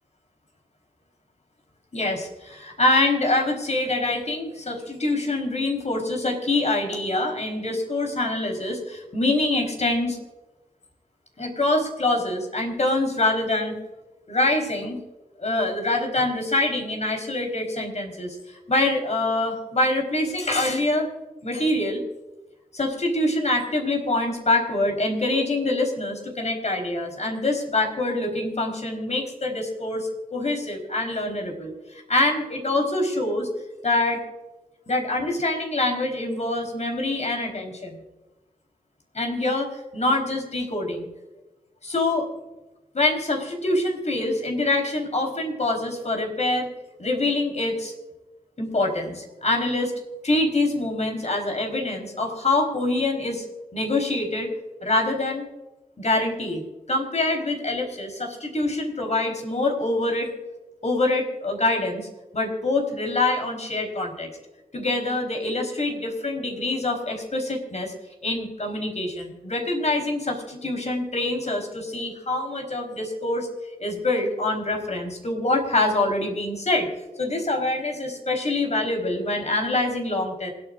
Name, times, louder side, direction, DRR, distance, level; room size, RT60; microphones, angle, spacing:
voice 1, 1.9-10.2 11.4-13.8 14.3-15.0 15.4-21.1 21.4-22.0 22.7-33.5 33.8-34.2 34.9-38.0 39.1-41.1 41.8-42.3 42.9-46.7 47.0-47.9 48.6-49.9 50.2-53.4 53.7-54.5 54.8-55.5 56.0-60.3 60.8-62.1 62.3-64.3 64.7-67.9 68.2-73.5 73.8-76.9 77.2-80.5, left 2 dB, 50° left, 2 dB, 4.2 m, -25 dB
27.0 x 9.1 x 2.6 m, 1.1 s
cardioid pair, 60°, 14 cm